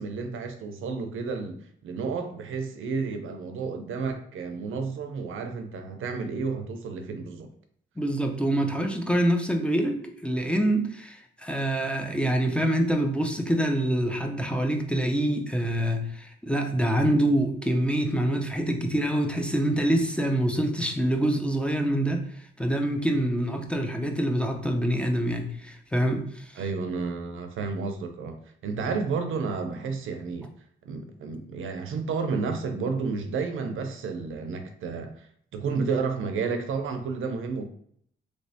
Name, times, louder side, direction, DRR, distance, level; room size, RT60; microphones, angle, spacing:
voice 1, 0.0-7.5 26.6-28.4 28.6-30.5 30.8-35.3 35.5-37.7, right 4 dB, 80° right, 6 dB, 0.6 m, -31 dB
voice 2, 8.0-26.6, right 1 dB, 5° left, 3 dB, 0.5 m, -26 dB
3.2 x 3.1 x 2.7 m, 0.64 s
cardioid pair, 85°, 21 cm